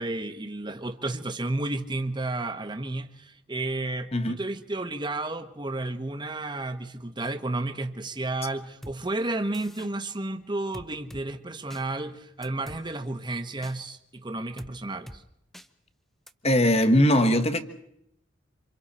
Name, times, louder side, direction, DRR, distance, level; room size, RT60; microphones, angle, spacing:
voice 1, 0.0-15.2, right 2 dB, 25° right, 1.2 m, -32 dB
sound 1, 8.8-9.0 9.5-9.9 10.7-11.2 11.7-11.8 12.4-12.8 13.6-13.8 14.6-14.7 15.1-15.2 15.5-15.7 16.3-16.4, equal, ahead, 0.8 m, -43 dB
voice 2, 16.4-17.6, left 1 dB, 30° left, 1.5 m, -20 dB
28.0 x 26.5 x 4.3 m
head